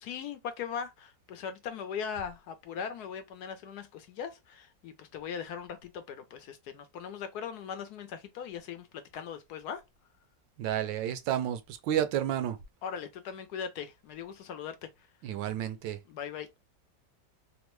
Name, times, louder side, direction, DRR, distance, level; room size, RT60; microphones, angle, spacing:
voice 1, 0.0-9.8 12.8-14.9 16.1-16.5, left 7 dB, 70° left, 1.0 m, -39 dB
voice 2, 10.6-12.6 15.2-16.0, right 11 dB, 90° right, 1.3 m, -31 dB
3.5 x 2.1 x 3.0 m
omnidirectional pair, 1.9 m